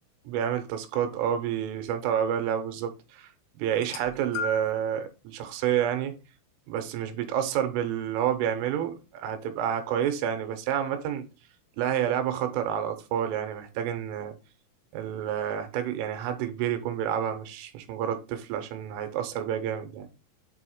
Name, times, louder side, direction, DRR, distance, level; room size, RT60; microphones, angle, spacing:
voice 1, 0.3-3.3 3.6-6.1 6.7-11.3 11.8-14.3 14.9-20.1, right 9 dB, 90° right, 3.2 m, -29 dB
sound 1, 3.7-4.9 5.8-6.0 7.0-7.1, left 5 dB, 80° left, 3.3 m, -36 dB
7.7 x 2.8 x 4.5 m
omnidirectional pair, 5.7 m